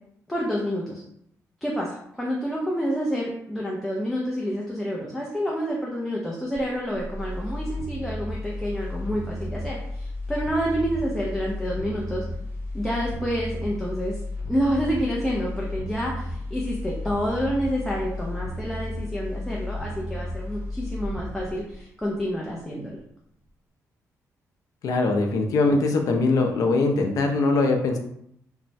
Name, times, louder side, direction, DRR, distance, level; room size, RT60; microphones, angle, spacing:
voice 1, 0.3-1.0 1.6-12.3 12.7-14.2 14.5-23.0, equal, 5° left, -3 dB, 0.4 m, -28 dB
sound 1, 6.5-22.6 23.0-23.1, left 1 dB, 35° right, 0.6 m, -33 dB
voice 2, 24.8-28.0, left 3 dB, 75° left, 4 dB, 0.5 m, -22 dB
3.1 x 2.0 x 2.6 m, 0.73 s
cardioid pair, 150°, 6 cm